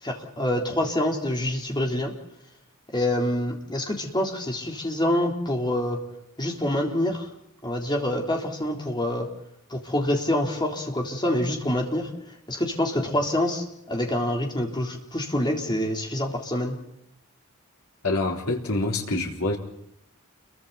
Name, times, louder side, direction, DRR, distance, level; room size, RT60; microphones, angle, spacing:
voice 1, 0.0-2.2 2.9-6.0 6.4-7.3 7.6-9.3 9.7-12.1 12.5-16.8, left 1 dB, 20° left, 1 dB, 3.8 m, -26 dB
voice 2, 18.0-19.6, left 2 dB, 85° left, 0 dB, 4.0 m, -26 dB
29.5 x 23.5 x 4.3 m, 0.80 s
head